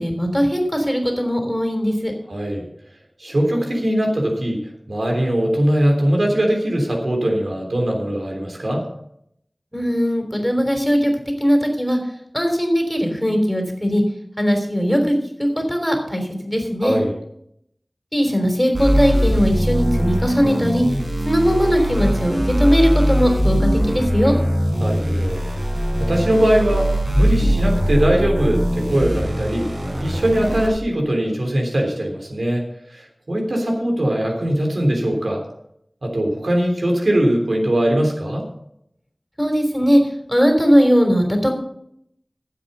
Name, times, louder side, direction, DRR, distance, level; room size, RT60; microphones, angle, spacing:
voice 1, 0.0-2.1 9.7-11.1 11.4-12.0 12.3-14.0 14.4-17.0 18.1-20.8 21.2-24.4 39.4-40.0 40.3-41.5, equal, 5° left, 4 dB, 3.4 m, -19 dB
voice 2, 2.3-2.7 3.2-8.8 16.8-17.1 24.8-25.4 26.0-32.6 32.9-35.4 36.0-38.4, right 1 dB, 85° right, 1 dB, 3.4 m, -21 dB
sound 1, 18.7-30.7, equal, 65° right, 5.4 m, -21 dB
15.0 x 7.8 x 5.5 m, 0.73 s
wide cardioid pair, 50°, 0 cm